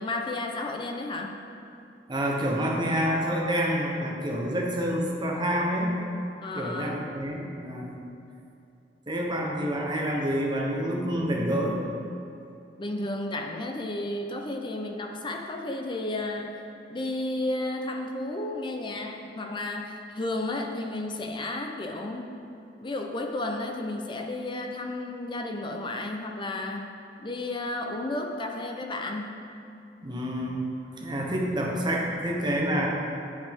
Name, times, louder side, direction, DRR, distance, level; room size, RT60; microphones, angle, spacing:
voice 1, 0.0-1.4 6.4-7.1 12.8-22.3 22.8-26.9 27.2-29.5, left 2 dB, 25° left, 3 dB, 0.5 m, -32 dB
voice 2, 2.1-6.0 6.5-8.0 9.1-11.8 30.0-32.9, equal, 25° right, -1 dB, 0.9 m, -28 dB
8.3 x 5.2 x 3.5 m, 2.7 s
head